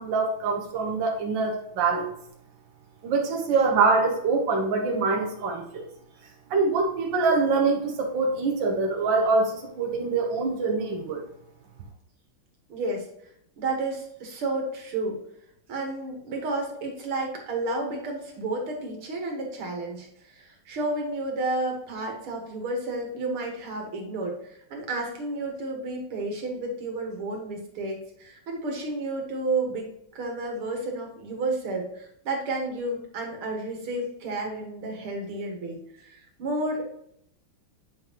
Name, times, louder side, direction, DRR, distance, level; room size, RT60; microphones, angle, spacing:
voice 1, 0.0-2.1 3.0-5.8 6.5-11.2, right 4 dB, 65° right, 1 dB, 1.7 m, -24 dB
voice 2, 12.7-13.1 13.6-15.2 15.7-29.9 30.1-36.9, right 2 dB, 85° right, 1 dB, 2.5 m, -31 dB
8.2 x 5.5 x 3.0 m, 0.75 s
omnidirectional pair, 2.3 m